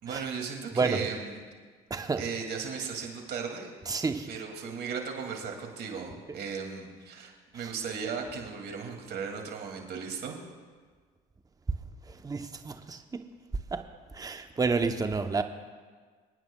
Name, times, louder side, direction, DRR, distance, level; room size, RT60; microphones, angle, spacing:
voice 1, 0.0-1.4 2.2-3.7 4.3-10.4, right 6 dB, 60° right, 2 dB, 2.4 m, -36 dB
voice 2, 1.9-2.2 3.9-4.3 7.5-7.7 12.1-13.3 13.7-13.8 14.1-15.4, right 4 dB, 20° right, 8 dB, 0.8 m, -30 dB
27.0 x 9.3 x 2.3 m, 1.5 s
hypercardioid pair, 70°, 19 cm